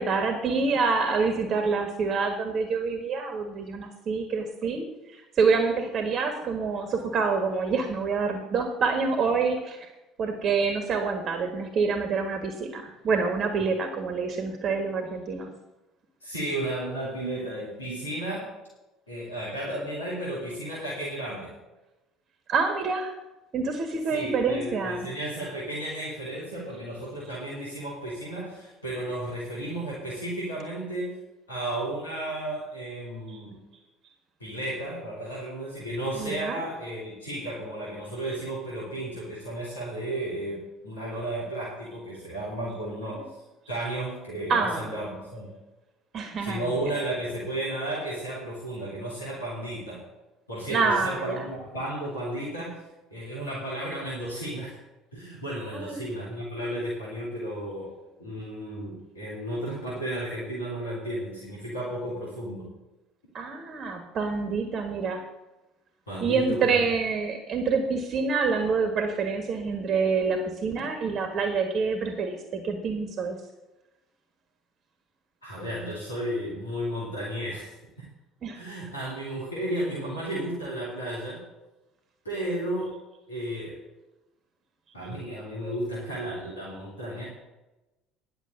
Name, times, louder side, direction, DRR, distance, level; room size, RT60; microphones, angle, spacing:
voice 1, 0.0-9.9 10.2-15.5 22.5-23.1 23.5-25.1 33.3-33.4 36.2-36.6 44.5-44.9 46.1-46.9 50.7-51.4 55.7-56.0 63.3-65.2 66.2-73.4 78.4-78.7, right 4 dB, 40° right, 6 dB, 1.6 m, -27 dB
voice 2, 16.2-18.5 19.1-21.5 24.1-31.1 31.5-33.6 34.4-43.3 43.7-45.5 46.4-50.0 50.5-52.8 53.1-54.8 55.1-57.9 58.2-62.7 66.1-66.8 75.4-78.0 78.5-81.4 82.2-83.0 83.3-83.8 84.9-87.2, right 1 dB, 85° left, -6 dB, 3.3 m, -33 dB
11.0 x 6.9 x 8.1 m, 1.0 s
figure-of-eight pair, 60°, 0 cm